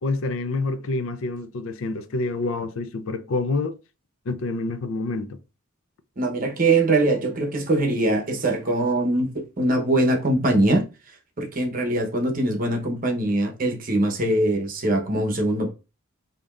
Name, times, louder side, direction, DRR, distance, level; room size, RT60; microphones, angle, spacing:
voice 1, 0.0-3.8 4.3-5.4, left 3 dB, 65° left, 0.5 m, -27 dB
voice 2, 6.2-9.3 9.6-10.8 11.4-15.7, right 2 dB, 40° right, 0.9 m, -22 dB
5.0 x 2.8 x 2.4 m
head